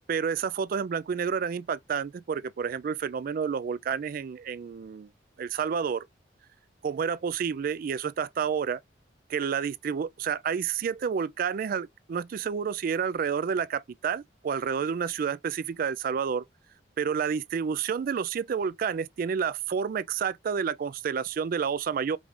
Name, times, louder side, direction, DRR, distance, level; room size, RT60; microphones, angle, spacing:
voice 1, 0.1-5.1 5.4-6.1 6.8-8.8 9.3-16.4 17.0-22.2, right 6 dB, 50° right, 0.3 m, -29 dB
4.8 x 2.4 x 3.5 m
head